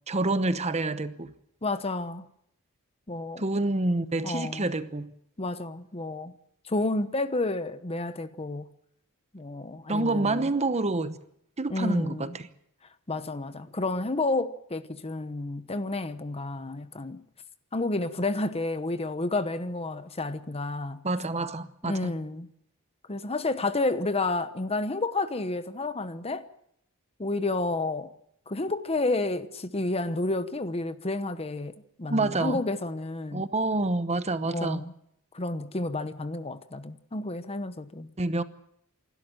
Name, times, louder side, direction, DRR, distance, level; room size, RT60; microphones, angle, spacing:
voice 1, 0.1-1.3 3.4-5.1 9.9-11.2 11.6-12.5 21.0-22.1 32.1-32.6 33.3-34.8 38.2-38.4, right 2 dB, 30° right, 0.9 m, -27 dB
voice 2, 1.6-2.2 3.1-3.4 4.2-4.7 5.4-6.3 6.6-8.7 9.3-10.5 11.7-12.4 13.1-17.2 17.7-21.0 21.8-22.5 23.1-26.5 27.2-28.1 28.5-31.7 32.0-33.4 34.4-34.9 35.3-38.1, left 2 dB, 25° left, 1.0 m, -30 dB
27.5 x 12.5 x 9.0 m
head